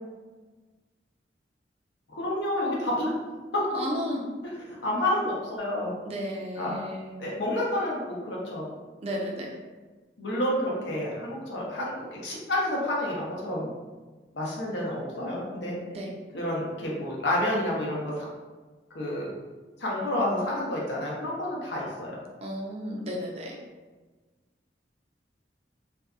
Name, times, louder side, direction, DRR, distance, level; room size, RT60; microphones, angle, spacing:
voice 1, 2.1-3.1 3.5-3.6 4.7-5.9 6.6-6.8 7.2-8.7 10.2-13.7 14.3-15.7 16.3-18.2 18.9-19.3 19.8-22.2, left 1 dB, 80° left, -4 dB, 0.7 m, -29 dB
voice 2, 3.7-4.2 6.0-7.1 9.0-9.5 15.9-16.1 22.4-23.6, equal, 35° right, -1 dB, 0.4 m, -33 dB
2.6 x 2.3 x 2.3 m, 1.3 s
head